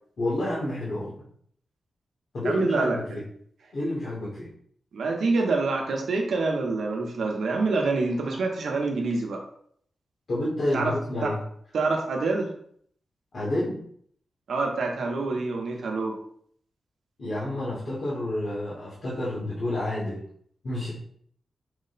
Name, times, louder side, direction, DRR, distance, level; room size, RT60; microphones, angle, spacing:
voice 1, 0.2-1.3 2.3-3.2 3.7-4.5 10.3-11.4 13.3-13.8 17.2-20.2 20.6-20.9, left 1 dB, 50° left, -7 dB, 1.1 m, -29 dB
voice 2, 2.4-3.2 4.9-9.4 10.7-10.9 11.2-11.3 11.7-12.5 14.5-16.2, right 3 dB, 75° right, 1 dB, 0.8 m, -26 dB
4.7 x 2.1 x 3.9 m, 0.63 s
wide cardioid pair, 155°, 0 cm